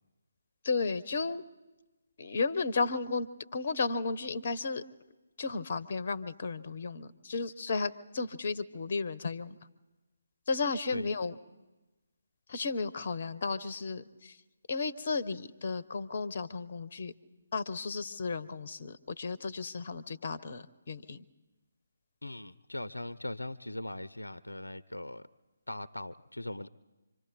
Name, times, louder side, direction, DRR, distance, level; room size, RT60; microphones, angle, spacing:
voice 1, 0.6-1.4 2.2-3.3 3.5-4.8 5.4-9.5 10.5-11.3 12.5-14.3 14.7-17.1 17.5-21.2, left 4 dB, 40° left, 16 dB, 0.8 m, -33 dB
voice 2, 22.2-25.3 25.7-26.7, left 1 dB, 75° left, 17 dB, 0.6 m, -40 dB
26.0 x 25.0 x 4.1 m, 1.1 s
figure-of-eight pair, 145°, 0 cm